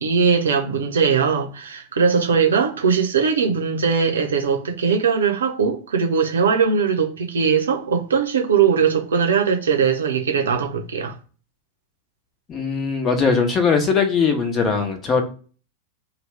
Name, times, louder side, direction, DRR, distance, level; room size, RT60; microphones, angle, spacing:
voice 1, 0.0-11.1, right 6 dB, 65° right, 0.7 m, -20 dB
voice 2, 12.5-15.2, left 5 dB, 25° left, 0.9 m, -20 dB
2.7 x 2.2 x 3.3 m
figure-of-eight pair, 90°, 0 cm